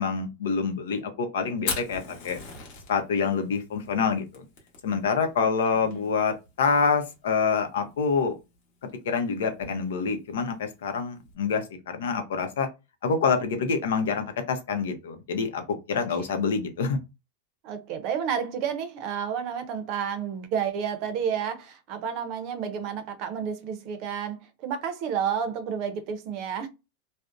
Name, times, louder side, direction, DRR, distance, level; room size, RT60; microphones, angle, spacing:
voice 1, 0.0-2.4 2.9-4.4 4.8-8.3 8.8-12.7 13.0-17.0, left 5 dB, 90° left, 0.6 m, -26 dB
Fire, 1.5-11.3, left 5 dB, 45° left, 0.9 m, -41 dB
voice 2, 17.6-26.7, right 7 dB, 40° right, 0.5 m, -30 dB
2.6 x 2.0 x 2.4 m
supercardioid pair, 160°, 0 cm